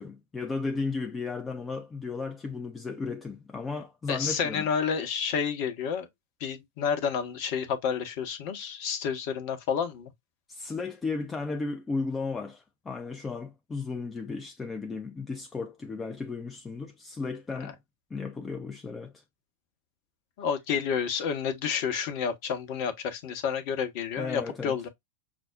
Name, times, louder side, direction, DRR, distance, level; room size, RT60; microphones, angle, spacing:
voice 1, 0.0-4.7 10.5-17.8 18.1-19.2 24.2-24.8, left 4 dB, 15° left, 0.4 m, -34 dB
voice 2, 4.1-6.1 6.4-10.1 20.4-24.9, left 7 dB, 45° left, 0.9 m, -30 dB
6.0 x 2.0 x 2.4 m
figure-of-eight pair, 90°, 0 cm